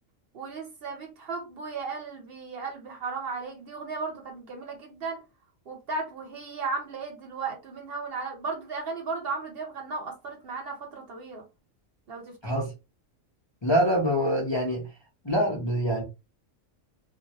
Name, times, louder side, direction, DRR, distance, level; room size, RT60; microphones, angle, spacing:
voice 1, 0.3-5.2 5.7-11.4 12.1-12.5, right 4 dB, 55° right, 0.8 m, -35 dB
voice 2, 13.6-14.8 15.2-16.0, equal, 45° left, 0.3 m, -25 dB
2.2 x 2.0 x 2.8 m
omnidirectional pair, 1.4 m